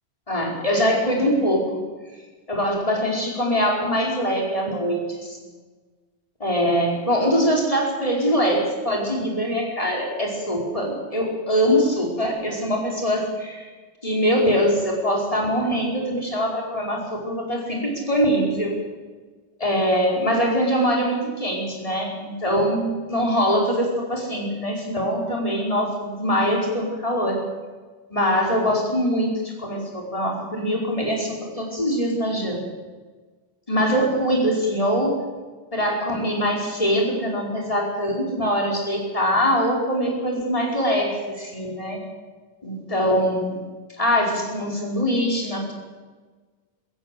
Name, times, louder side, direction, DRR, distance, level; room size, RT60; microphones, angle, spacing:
voice 1, 0.3-1.8 2.5-5.4 6.4-13.7 14.0-18.8 19.6-27.5 28.1-32.7 33.7-35.2 35.7-42.0 42.6-43.6 44.0-45.7, equal, 30° left, -1 dB, 5.2 m, -23 dB
22.5 x 15.5 x 7.8 m, 1.4 s
omnidirectional pair, 1.2 m